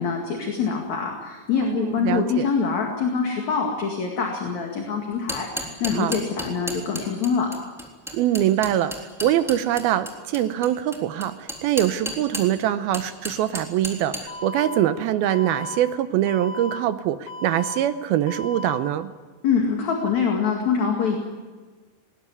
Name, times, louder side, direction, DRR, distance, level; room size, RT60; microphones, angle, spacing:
voice 1, 0.0-7.5 19.4-21.2, left 6 dB, 50° left, 1 dB, 3.1 m, -24 dB
voice 2, 1.6-2.5 5.9-6.2 8.1-19.1, right 12 dB, 75° right, 11 dB, 2.4 m, -23 dB
sound 1, 5.1-12.6 12.9-14.2, equal, ahead, 2.5 m, -32 dB
Alarm, 14.3-14.8 15.3-15.8 16.3-16.8 17.3-17.8 18.3-18.8, left 2 dB, 75° left, 4.2 m, -35 dB
20.0 x 19.0 x 9.7 m, 1.4 s
omnidirectional pair, 5.0 m